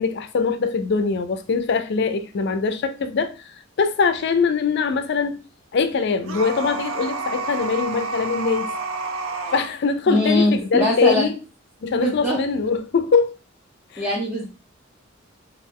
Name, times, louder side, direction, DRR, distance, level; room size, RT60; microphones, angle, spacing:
voice 1, 0.0-5.4 5.7-8.7 9.5-11.4 11.8-13.3 13.9-14.1, left 5 dB, 55° left, 0.4 m, -22 dB
sound 1, 6.2-9.7, right 3 dB, 90° right, 0.5 m, -29 dB
voice 2, 10.1-11.3 11.9-12.4 14.0-14.5, left 1 dB, 10° right, 0.6 m, -21 dB
3.1 x 2.4 x 3.5 m
head